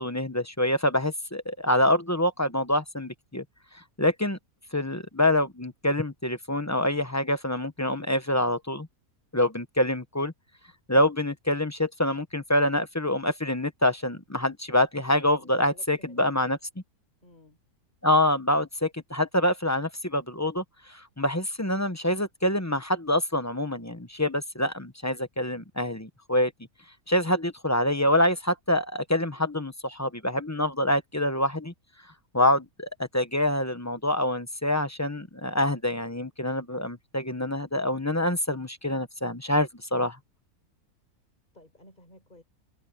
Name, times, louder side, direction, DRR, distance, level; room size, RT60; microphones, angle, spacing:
voice 1, 0.0-3.4 4.0-4.4 4.7-8.9 9.3-10.3 10.9-16.6 18.0-20.6 20.9-26.5 27.1-31.7 32.3-40.2, left 1 dB, 15° left, 0.8 m, -26 dB
voice 2, 15.4-16.5 17.2-17.6 41.5-42.4, left 1 dB, 30° left, 5.6 m, -55 dB
omnidirectional pair, 1.6 m